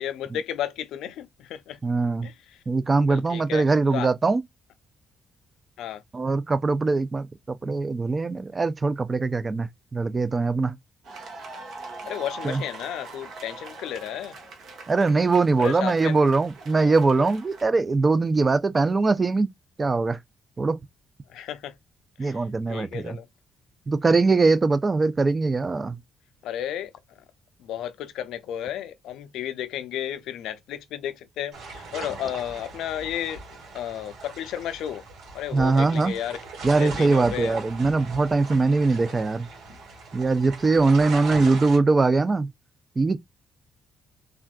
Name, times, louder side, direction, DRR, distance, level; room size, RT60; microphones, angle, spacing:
voice 1, 0.0-1.8 2.2-2.6 3.1-3.6 3.9-4.1 5.8-6.0 12.0-14.4 15.6-16.2 16.7-17.3 21.3-21.8 22.2-22.4 22.7-23.3 26.4-26.9 27.6-33.4 33.7-35.0 35.3-36.4 36.7-37.6 39.0-39.3, left 10 dB, 85° left, 0.4 m, -33 dB
voice 2, 1.8-2.3 2.7-4.4 6.1-7.3 7.6-10.8 12.4-12.6 14.9-19.5 19.8-20.2 20.6-20.8 22.2-23.2 23.9-26.0 35.5-36.1 36.6-39.5 40.1-42.5 43.0-43.2, right 3 dB, 30° right, 0.4 m, -22 dB
sound 1, 11.0-17.6, right 3 dB, 70° right, 1.0 m, -42 dB
sound 2, 31.5-41.8, right 3 dB, 85° right, 2.0 m, -39 dB
3.4 x 2.4 x 2.3 m
cardioid pair, 90°, 0 cm